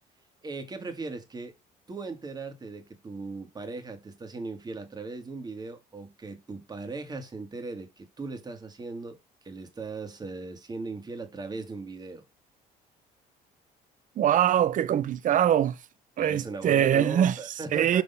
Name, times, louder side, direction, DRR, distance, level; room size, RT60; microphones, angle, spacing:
voice 1, 0.4-1.5 1.9-9.2 9.4-12.2 16.2-18.0, right 3 dB, 25° right, 1.8 m, -38 dB
voice 2, 14.2-15.8 16.2-17.3 17.7-18.0, right 10 dB, 50° right, 0.7 m, -23 dB
6.0 x 3.9 x 5.5 m
cardioid pair, 110°, 17 cm